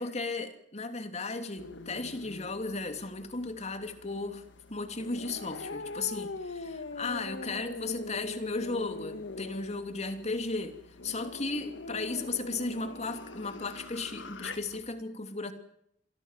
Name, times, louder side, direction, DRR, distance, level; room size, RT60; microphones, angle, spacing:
voice 1, 0.0-4.4 4.7-10.8 11.0-15.5, left 3 dB, 40° left, 8 dB, 2.9 m, -35 dB
sound 1, 1.6-14.8, left 2 dB, 90° left, 1.7 m, -43 dB
28.5 x 22.5 x 7.5 m, 0.70 s
head